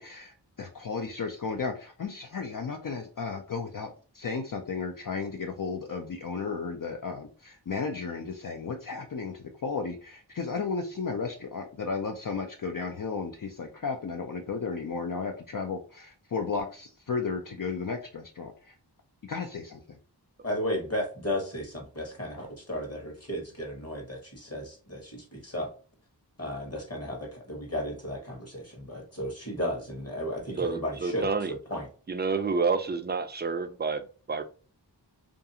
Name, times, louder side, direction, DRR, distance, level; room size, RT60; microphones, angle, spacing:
voice 1, 0.0-3.9 4.1-18.7 19.2-20.0, left 5 dB, 50° left, 0.5 m, -34 dB
voice 2, 20.4-25.7 26.4-31.3 31.7-31.9, equal, 35° left, 1.1 m, -34 dB
voice 3, 30.6-31.5 32.1-34.4, right 4 dB, 25° right, 0.4 m, -29 dB
2.5 x 2.4 x 2.7 m
wide cardioid pair, 40°, 42 cm